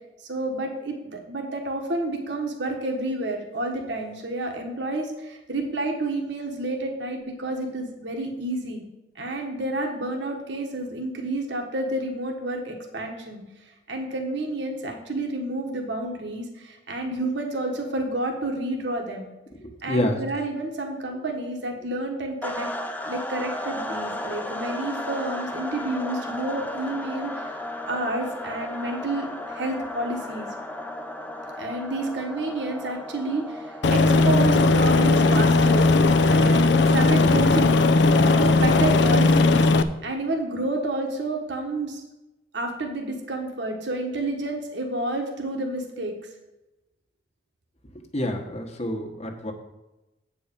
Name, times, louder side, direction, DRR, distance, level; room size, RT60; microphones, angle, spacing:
voice 1, 0.2-8.8 9.1-13.4 13.9-19.3 19.8-22.7 23.0-27.5 27.8-30.5 31.6-35.9 36.3-39.6 40.0-42.0 42.5-46.2, right 2 dB, 70° right, 2 dB, 1.4 m, -30 dB
voice 2, 19.6-20.2 48.1-49.5, left 1 dB, 35° left, 3 dB, 1.2 m, -27 dB
sound 1, 22.4-37.2, left 1 dB, 10° left, 0.6 m, -35 dB
Aircraft, 33.8-39.8, left 3 dB, 65° left, 0.5 m, -18 dB
8.5 x 4.8 x 7.3 m, 1.0 s
head